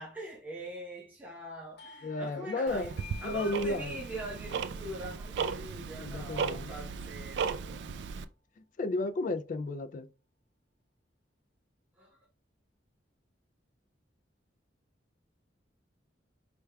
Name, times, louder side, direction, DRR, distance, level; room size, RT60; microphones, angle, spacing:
voice 1, 0.0-7.9 12.0-12.2, right 1 dB, 10° right, 0.8 m, -43 dB
Doorbell, 1.8-7.1, left 6 dB, 65° left, 0.9 m, -54 dB
voice 2, 2.0-2.9 3.2-4.0 6.0-6.7 8.8-10.1, left 2 dB, 45° left, 0.3 m, -33 dB
Tick-tock, 2.7-8.2, right 6 dB, 70° right, 0.3 m, -36 dB
4.5 x 3.4 x 2.2 m
head